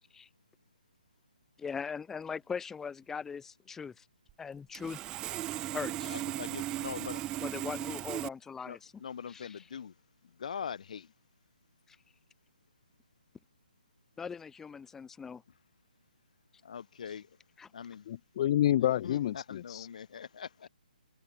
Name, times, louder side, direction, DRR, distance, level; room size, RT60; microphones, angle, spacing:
voice 1, 1.6-4.0 4.4-5.0 5.7-6.2 7.4-8.9 9.3-9.6 11.9-12.0 14.2-15.4 17.1-17.2 17.6-17.7, left 6 dB, 10° left, 3.5 m, -40 dB
Sawing, 4.3-4.4 4.7-8.3, right 14 dB, 15° right, 0.6 m, -37 dB
voice 2, 6.0-7.2 8.7-9.9 10.4-11.1 16.6-17.3 17.7-18.1 19.0-20.7, left 7 dB, 55° left, 0.9 m, -42 dB
voice 3, 18.1-19.9, left 12 dB, 35° left, 0.5 m, -28 dB
figure-of-eight pair, 145°, 5 cm